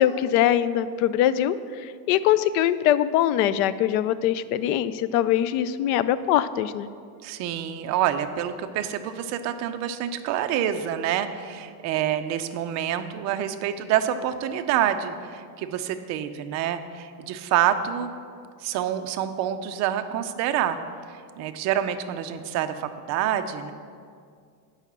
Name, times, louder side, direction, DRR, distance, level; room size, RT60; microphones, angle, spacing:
voice 1, 0.0-6.9, left 11 dB, 60° left, 15 dB, 0.5 m, -22 dB
voice 2, 7.2-18.1 18.6-20.8 21.4-23.7, right 10 dB, 35° right, 9 dB, 0.5 m, -27 dB
9.8 x 5.7 x 7.3 m, 2.2 s
supercardioid pair, 145°, 49 cm